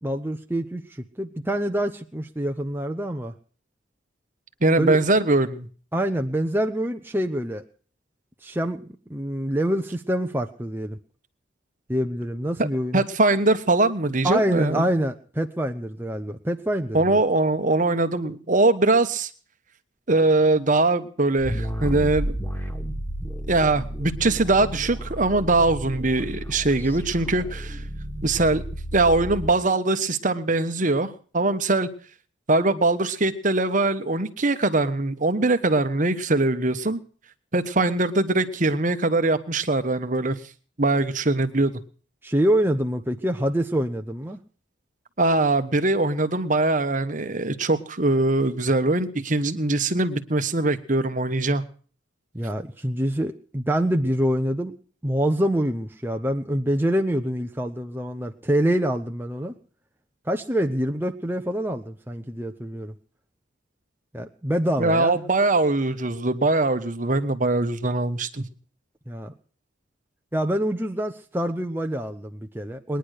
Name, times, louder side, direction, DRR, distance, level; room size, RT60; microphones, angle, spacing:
voice 1, 0.0-3.3 4.8-5.0 5.9-7.6 8.4-8.8 9.1-11.0 11.9-13.0 14.2-17.2 42.2-44.4 52.3-54.7 55.0-59.6 60.3-62.9 64.1-65.2 69.1-69.3 70.3-73.0, equal, 10° right, 4 dB, 0.8 m, -26 dB
voice 2, 4.6-5.7 12.6-12.7 12.9-14.9 16.9-19.3 20.1-22.4 23.5-27.8 28.2-28.6 28.9-31.9 32.5-37.0 37.5-40.4 40.8-41.8 45.2-51.6 64.8-68.4, right 2 dB, 40° right, 11 dB, 1.2 m, -22 dB
sound 1, 21.4-29.5, right 1 dB, 10° left, 2.0 m, -32 dB
21.0 x 10.5 x 6.5 m, 0.43 s
head